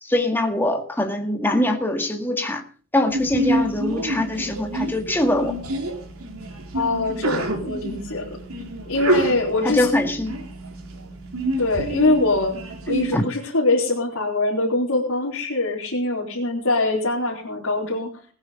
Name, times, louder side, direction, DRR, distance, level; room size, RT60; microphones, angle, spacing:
voice 1, 0.0-2.6 2.9-5.6 9.6-10.3 13.1-13.2, left 1 dB, 10° left, 1.9 m, -23 dB
Sneeze, 3.1-13.1, right 1 dB, 75° right, 3.8 m, -28 dB
voice 2, 6.7-8.4 8.9-9.8 11.6-12.6 12.9-18.1, left 2 dB, 75° left, 4.1 m, -23 dB
19.0 x 9.9 x 5.2 m
head